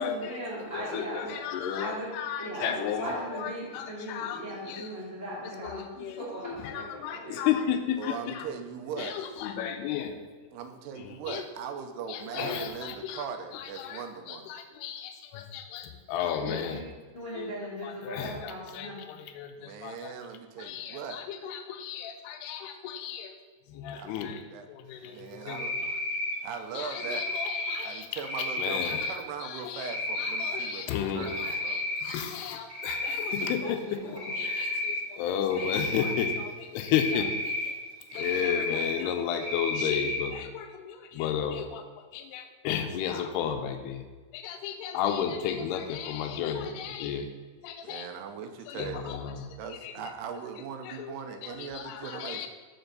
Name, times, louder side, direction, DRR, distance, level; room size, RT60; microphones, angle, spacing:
voice 1, 0.0-1.4 1.8-2.1 2.4-7.4 16.4-16.8 17.1-19.1 33.1-33.2 33.6-33.7 34.3-34.4, equal, 45° left, -8 dB, 0.7 m, -38 dB
voice 2, 0.7-3.1 3.4-4.4 4.7-4.8 5.6-6.2 6.4-8.5 9.0-10.1 11.0-11.4 12.1-13.2 13.5-16.8 17.4-17.5 17.8-20.1 20.6-23.3 23.7-24.4 24.7-25.7 26.8-28.1 28.6-33.8 34.4-37.7 38.1-41.8 42.1-44.0 44.3-47.3 47.6-48.1 48.7-49.5 49.8-49.9 50.9-51.1 51.4-52.5, left 8 dB, 80° left, 6 dB, 2.6 m, -33 dB
voice 3, 8.0-9.2 10.5-14.6 16.2-16.3 19.6-21.2 23.9-24.7 25.0-25.7 26.4-27.3 27.8-31.8 47.8-49.2 49.6-52.5, right 6 dB, 85° right, 6 dB, 2.6 m, -40 dB
Cricket, 25.5-26.3 26.9-27.8 28.2-29.1 29.8-30.6 31.0-32.0 32.4-33.6 34.2-35.0 35.5-36.4 36.9-37.7 38.1-38.9 39.4-40.2, left 1 dB, 50° right, 1.0 m, -32 dB
7.0 x 6.4 x 3.9 m, 1.4 s
omnidirectional pair, 4.7 m